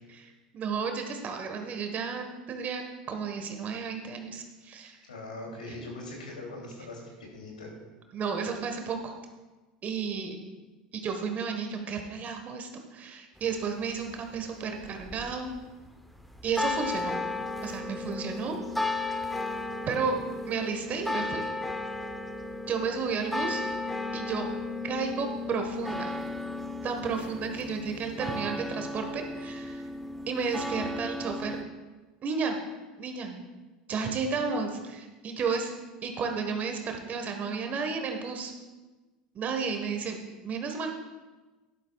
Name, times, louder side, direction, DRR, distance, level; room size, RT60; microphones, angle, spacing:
voice 1, 0.2-5.0 8.1-9.2 9.8-10.3 10.9-15.5 16.4-17.2 17.6-18.5 19.9-20.1 20.5-21.5 22.7-23.6 24.1-24.5 24.8-26.1 26.8-29.8 30.3-31.6 32.2-32.6 33.0-33.4 33.9-35.7 36.0-38.5 39.3-40.2 40.4-40.9, right 5 dB, 40° right, 5 dB, 1.4 m, -32 dB
voice 2, 5.1-7.7, left 2 dB, 85° left, -1 dB, 2.8 m, -41 dB
sound 1, 13.4-31.6, left 2 dB, ahead, 0.8 m, -35 dB
12.0 x 11.5 x 2.4 m, 1.2 s
hypercardioid pair, 80°, 4 cm